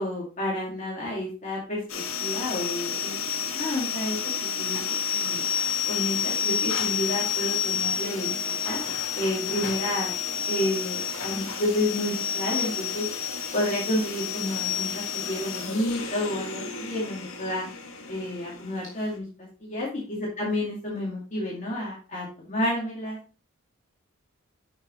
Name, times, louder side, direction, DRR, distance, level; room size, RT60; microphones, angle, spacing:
voice 1, 0.0-3.2 3.5-4.2 4.6-5.4 5.9-8.8 9.1-10.1 10.5-13.0 13.5-17.7 18.1-19.3 19.6-23.2, left 1 dB, 35° left, -5 dB, 2.3 m, -30 dB
sound 1, 1.9-19.2, left 8 dB, 70° left, 1.6 m, -30 dB
8.5 x 5.9 x 3.1 m, 0.35 s
head